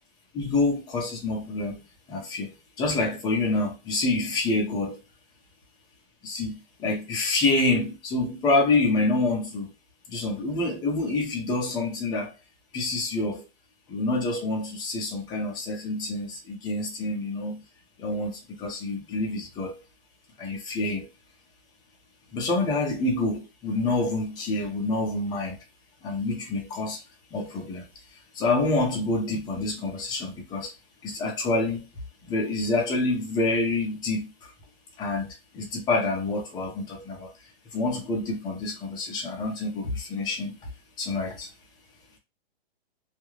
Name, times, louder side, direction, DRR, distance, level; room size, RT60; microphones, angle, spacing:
voice 1, 0.3-1.8 2.1-2.5 2.8-5.0 6.2-9.7 10.1-12.3 12.7-13.5 13.9-17.6 18.0-19.7 20.4-21.1 22.3-25.6 26.0-27.0 27.3-27.9 28.3-30.7 31.0-31.9 32.2-34.5 35.0-37.3 37.7-40.6 41.0-41.5, left 2 dB, 15° left, 0.7 m, -27 dB
2.4 x 2.2 x 3.1 m
hypercardioid pair, 155°, 30 cm